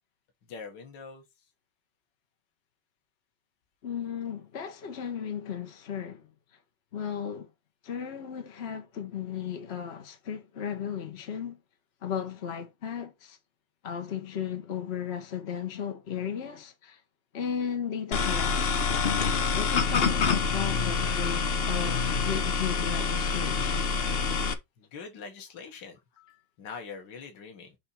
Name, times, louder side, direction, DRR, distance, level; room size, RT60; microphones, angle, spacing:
voice 1, 0.5-1.2 21.4-21.6 24.4-26.0 26.6-27.8, left 5 dB, 65° left, 2.2 m, -43 dB
voice 2, 3.8-6.3 6.9-7.5 7.8-11.6 12.0-13.4 13.8-17.0 17.3-18.9 19.5-24.0, left 8 dB, 50° left, 0.8 m, -35 dB
sound 1, 18.1-24.5, left 5 dB, 85° left, 0.5 m, -26 dB
7.0 x 2.9 x 5.7 m
omnidirectional pair, 2.2 m